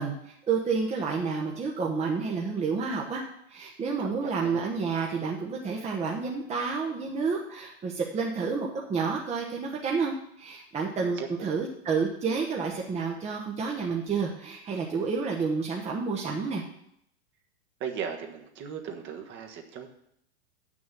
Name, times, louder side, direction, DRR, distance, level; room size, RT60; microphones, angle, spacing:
voice 1, 0.0-3.2 3.5-16.6, right 5 dB, 20° right, -1 dB, 1.2 m, -30 dB
voice 2, 4.0-4.7 11.0-11.5 17.8-19.9, right 7 dB, 35° right, 3 dB, 1.5 m, -37 dB
7.9 x 6.3 x 7.5 m, 0.75 s
hypercardioid pair, 130°, 34 cm